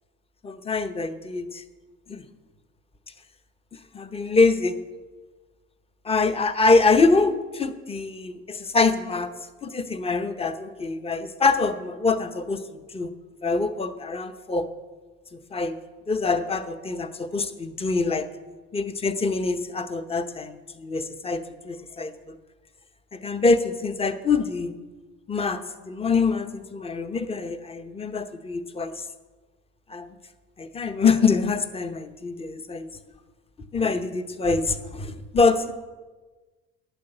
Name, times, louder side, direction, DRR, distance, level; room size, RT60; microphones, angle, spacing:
voice 1, 0.4-1.6 2.1-2.2 3.9-4.8 6.0-9.3 9.6-13.1 13.4-14.6 15.3-15.8 16.1-18.3 18.7-22.4 23.1-24.7 25.3-29.0 29.9-30.1 30.6-32.9 33.7-35.7, left 4 dB, 20° left, 10 dB, 0.9 m, -24 dB
11.5 x 9.8 x 7.9 m, 1.3 s
cardioid pair, 130°, 31 cm